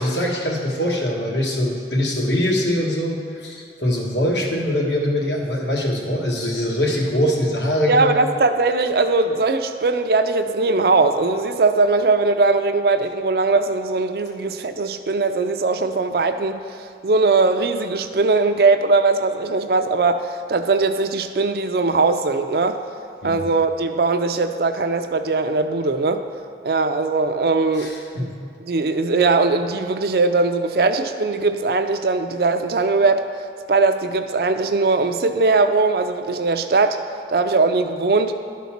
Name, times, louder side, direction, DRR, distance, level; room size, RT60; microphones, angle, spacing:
voice 1, 0.0-8.2 23.2-23.4 27.8-28.3, equal, 80° left, -1 dB, 1.4 m, -22 dB
voice 2, 7.9-16.6 17.0-22.8 23.2-26.2 26.6-28.3 28.7-33.3 33.7-37.0 37.3-38.3, right 3 dB, 55° right, 8 dB, 0.4 m, -20 dB
11.5 x 4.1 x 5.8 m, 2.3 s
head